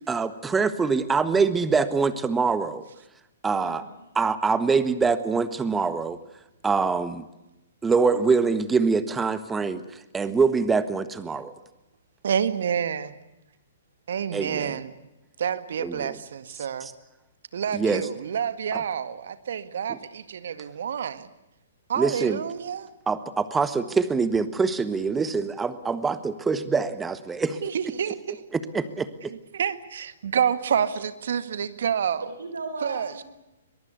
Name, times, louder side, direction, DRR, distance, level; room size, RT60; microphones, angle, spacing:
voice 1, 0.1-2.8 3.4-3.8 4.1-6.2 6.6-7.2 7.8-9.8 10.1-11.5 14.3-14.8 15.8-16.1 17.7-18.0 22.0-22.4 23.1-27.6 28.7-29.1, right 4 dB, 10° right, 12 dB, 1.4 m, -24 dB
voice 2, 3.5-4.0 32.2-33.2, right 3 dB, 80° right, 7 dB, 3.8 m, -36 dB
voice 3, 12.2-13.2 14.1-14.9 15.4-16.9 17.5-21.3 21.9-22.9 27.6-28.4 29.3-32.3 32.8-33.2, right 8 dB, 65° right, 12 dB, 1.8 m, -28 dB
22.5 x 22.5 x 8.2 m, 0.96 s
hypercardioid pair, 125°, 0 cm